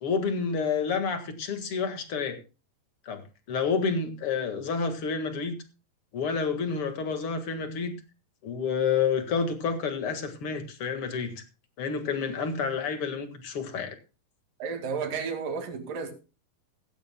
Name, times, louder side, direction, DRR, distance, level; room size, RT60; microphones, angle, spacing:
voice 1, 0.0-2.4 3.1-3.2 3.5-5.6 6.1-7.9 8.4-11.4 11.8-14.0, left 5 dB, 45° left, 2.1 m, -29 dB
voice 2, 14.6-16.1, right 5 dB, 65° right, 3.8 m, -32 dB
16.5 x 15.0 x 2.2 m
omnidirectional pair, 4.2 m